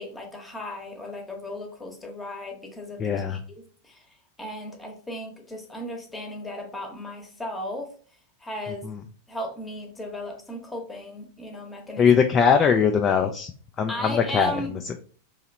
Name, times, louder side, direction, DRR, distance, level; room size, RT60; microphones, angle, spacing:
voice 1, 0.0-3.0 3.3-4.1 4.4-7.9 8.4-8.9 9.3-12.1 13.9-14.8, left 1 dB, 10° left, 2 dB, 0.9 m, -36 dB
voice 2, 3.0-3.4 8.8-9.0 12.0-13.5 13.8-14.5 14.8-15.0, left 6 dB, 25° left, 4 dB, 0.3 m, -21 dB
3.1 x 2.8 x 3.8 m, 0.44 s
figure-of-eight pair, 90°, 0 cm